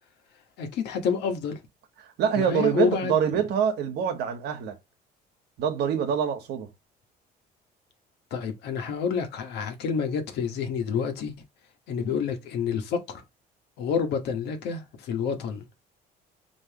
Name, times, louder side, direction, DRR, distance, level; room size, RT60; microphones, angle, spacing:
voice 1, 0.6-1.6 2.3-3.2 8.3-11.3 11.9-13.2 13.8-15.7, left 6 dB, 80° left, 1.4 m, -28 dB
voice 2, 2.2-4.7 5.6-6.7, right 8 dB, 80° right, 1.2 m, -25 dB
5.4 x 3.0 x 2.9 m
cardioid pair, 110°, 17 cm